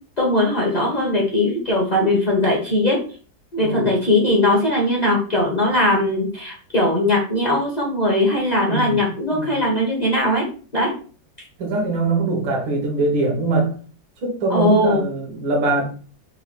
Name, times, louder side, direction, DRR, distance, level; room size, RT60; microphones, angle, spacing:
voice 1, 0.2-3.0 3.5-10.5 10.7-10.9 14.5-15.0, left 1 dB, 35° left, -3 dB, 0.7 m, -19 dB
voice 2, 8.7-9.6 11.6-13.7 14.2-15.8, right 3 dB, 80° right, -2 dB, 1.8 m, -22 dB
4.5 x 2.3 x 3.0 m, 0.40 s
omnidirectional pair, 2.1 m